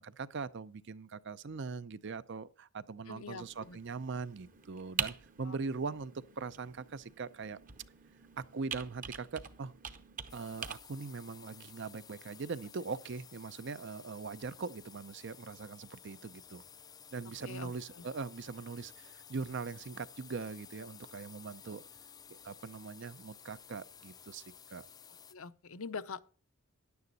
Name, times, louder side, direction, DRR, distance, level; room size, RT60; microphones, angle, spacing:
voice 1, 0.0-7.6 8.4-9.7 10.3-16.6 17.1-21.8 22.4-24.4 24.7-24.9, right 4 dB, 55° right, 0.5 m, -41 dB
voice 2, 3.1-3.8 5.4-5.7 17.4-18.0 25.3-26.2, left 5 dB, 75° left, 0.7 m, -44 dB
Computer keyboard, 3.4-10.7, right 7 dB, 40° right, 0.9 m, -44 dB
sound 1, 10.3-25.3, left 7 dB, 15° left, 0.4 m, -55 dB
10.5 x 9.5 x 4.0 m
head